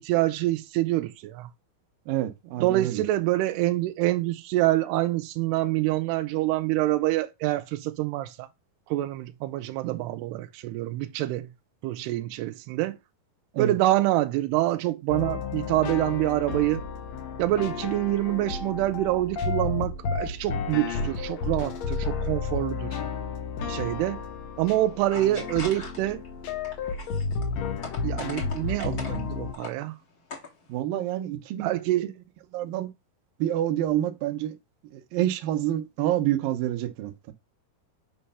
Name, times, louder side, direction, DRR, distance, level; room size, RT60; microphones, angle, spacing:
voice 1, 0.0-1.5 2.6-8.5 8.9-11.5 11.8-13.0 13.6-16.8 17.4-23.0 23.7-24.2 24.6-26.2 28.0-30.0 31.6-32.1, right 16 dB, 90° right, 2.7 m, -26 dB
voice 2, 2.1-3.0 13.5-13.8 30.7-31.7 32.0-32.1 32.5-32.9 33.4-34.6 34.9-37.3, right 13 dB, 70° right, 2.5 m, -28 dB
sound 1, 15.1-29.5, left 5 dB, 75° left, 1.6 m, -32 dB
sound 2, 24.6-26.3 26.6-29.2 29.5-29.7 30.1-30.7, left 4 dB, 40° left, 1.4 m, -40 dB
8.8 x 3.2 x 5.6 m
omnidirectional pair, 4.6 m